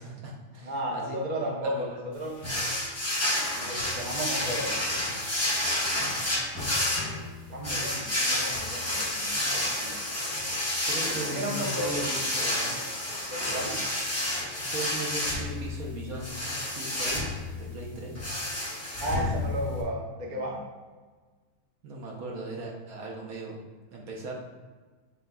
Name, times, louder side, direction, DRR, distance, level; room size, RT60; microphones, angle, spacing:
voice 1, 0.0-2.0 6.0-6.1 10.9-12.8 14.7-16.3 16.7-18.2 21.8-23.6 23.9-24.3, right 2 dB, 65° right, -1 dB, 1.2 m, -38 dB
voice 2, 0.6-2.4 3.5-4.7 7.5-10.0 11.0-12.1 13.3-13.9 19.0-20.6, right 1 dB, 45° right, -1 dB, 0.5 m, -34 dB
sound 1, 2.4-19.8, left 1 dB, 15° left, 0.6 m, -30 dB
6.7 x 3.6 x 2.2 m, 1.4 s
omnidirectional pair, 1.8 m